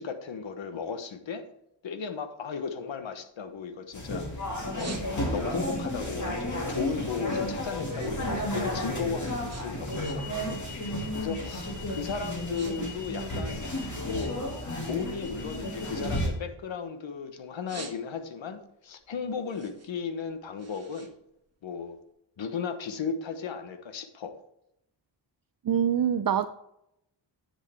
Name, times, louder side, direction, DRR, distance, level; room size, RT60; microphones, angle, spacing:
voice 1, 0.0-1.4 1.8-4.3 4.7-4.9 5.3-13.7 14.0-14.4 14.8-21.1 21.6-22.0 22.4-24.4, left 6 dB, 75° left, 9 dB, 1.1 m, -35 dB
sound 1, 3.0-4.1 4.5-5.6 6.0-8.2 8.5-10.5 10.8-11.1 11.7-11.9 12.2-12.7 13.0-14.2 14.7-17.0 17.4-18.5 18.9-22.0, right 4 dB, 35° right, 1.4 m, -48 dB
sound 2, 3.9-16.3, left 1 dB, 40° left, 2.4 m, -32 dB
voice 2, 25.6-26.5, right 9 dB, 50° right, 9 dB, 0.5 m, -24 dB
10.0 x 7.6 x 3.4 m, 0.80 s
wide cardioid pair, 120°, 46 cm